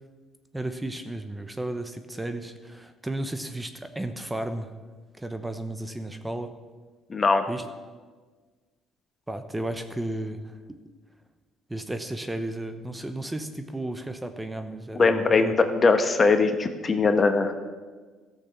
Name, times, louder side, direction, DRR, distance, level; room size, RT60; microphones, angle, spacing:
voice 1, 0.5-4.7 5.2-6.5 7.5-7.7 9.3-10.8 11.7-15.5, right 1 dB, 10° right, 8 dB, 0.9 m, -33 dB
voice 2, 7.1-7.5 15.0-17.5, left 4 dB, 35° left, 8 dB, 1.0 m, -21 dB
13.5 x 6.7 x 5.9 m, 1.4 s
supercardioid pair, 75°, 0 cm